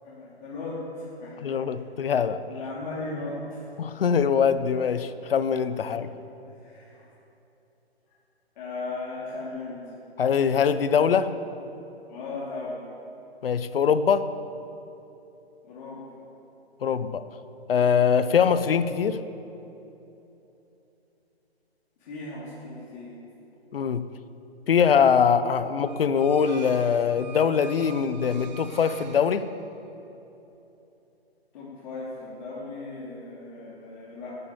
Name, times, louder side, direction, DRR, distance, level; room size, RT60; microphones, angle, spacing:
voice 1, 0.0-1.6 2.0-2.1 2.5-3.7 5.9-6.0 6.6-7.1 8.5-9.8 12.1-12.9 15.6-16.3 22.0-23.1 31.5-34.3, left 2 dB, 45° left, -8 dB, 3.2 m, -37 dB
voice 2, 1.4-2.4 3.8-6.1 10.2-11.3 13.4-14.3 16.8-17.2 17.7-19.2 23.7-24.1 24.7-29.5, left 7 dB, 60° left, 13 dB, 0.8 m, -22 dB
sound 1, 25.8-30.0, right 6 dB, 45° right, 1.1 m, -46 dB
12.5 x 8.6 x 8.7 m, 3.0 s
figure-of-eight pair, 135°, 32 cm